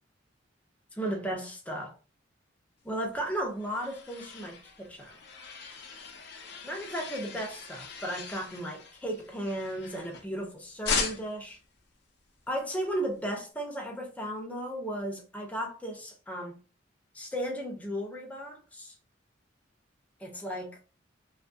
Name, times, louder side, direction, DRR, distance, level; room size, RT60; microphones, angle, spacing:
voice 1, 0.9-1.9 2.8-5.1 6.6-11.6 12.5-16.5 17.1-18.9 20.2-20.7, right 1 dB, 10° left, 0.6 m, -35 dB
sound 1, 3.1-10.4 10.8-11.5, left 5 dB, 60° left, 0.6 m, -38 dB
2.7 x 2.6 x 2.4 m
head